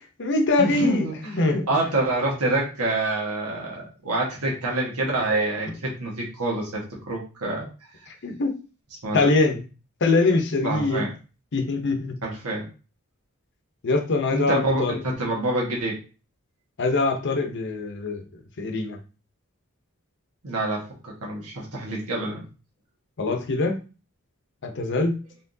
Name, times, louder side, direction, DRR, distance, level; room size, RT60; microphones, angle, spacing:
voice 1, 0.0-1.7 8.2-8.6 9.1-9.6 10.0-11.1 11.5-12.2 13.8-15.0 16.8-18.2 18.6-19.0 23.2-23.8 24.6-25.1, left 3 dB, 55° left, 5 dB, 0.7 m, -23 dB
voice 2, 0.6-1.1 1.7-7.7 9.0-9.3 10.6-11.1 12.2-12.7 14.3-16.0 20.4-22.4, right 2 dB, 90° right, -2 dB, 1.4 m, -27 dB
4.3 x 3.5 x 2.7 m, 0.34 s
head